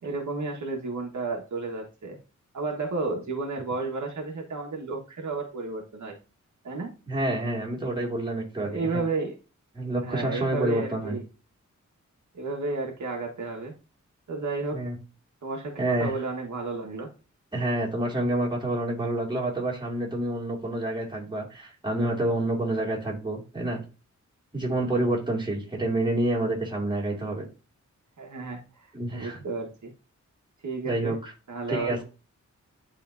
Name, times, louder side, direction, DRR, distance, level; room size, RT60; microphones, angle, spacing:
voice 1, 0.0-2.2 2.5-6.2 6.6-6.9 8.6-9.4 10.0-11.2 12.3-13.7 14.3-14.8 15.4-17.1 28.2-29.9 30.6-31.2 31.5-32.0, right 3 dB, 75° right, 1 dB, 1.5 m, -32 dB
voice 2, 7.1-9.0 9.8-11.2 14.7-15.0 15.8-16.1 17.5-23.8 24.5-27.4 28.9-29.4 30.8-31.3 31.7-32.0, right 1 dB, 15° right, -3 dB, 2.2 m, -28 dB
11.0 x 3.7 x 2.6 m, 0.32 s
wide cardioid pair, 140°, 30 cm